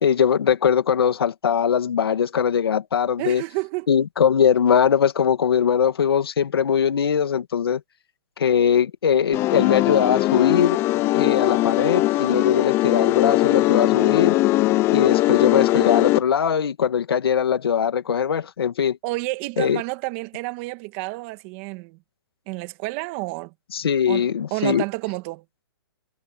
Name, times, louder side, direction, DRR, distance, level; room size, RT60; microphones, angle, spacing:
voice 1, 0.0-3.4 3.9-7.8 8.4-10.8 11.1-14.4 14.9-19.0 19.6-19.8 23.7-24.8, left 8 dB, 80° left, 2.4 m, -21 dB
voice 2, 3.2-3.9 19.0-22.0 22.5-23.5 24.1-25.4, right 23 dB, 30° right, 1.8 m, -30 dB
sound 1, 9.3-16.2, left 18 dB, 20° left, 0.6 m, -20 dB
hypercardioid pair, 155°, 13 cm